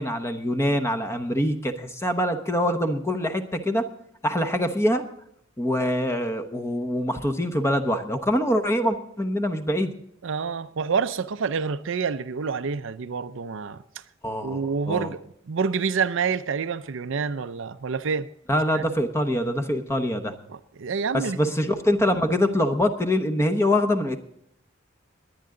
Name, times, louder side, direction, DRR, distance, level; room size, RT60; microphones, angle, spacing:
voice 1, 0.0-3.8 4.2-5.0 5.6-9.9 14.2-15.1 18.5-20.3 21.1-24.2, left 1 dB, 15° left, 1.0 m, -24 dB
voice 2, 10.2-13.8 14.4-15.2 15.5-18.3 18.7-18.8 20.5-21.5, right 5 dB, 65° right, 0.5 m, -27 dB
21.0 x 9.6 x 3.8 m
head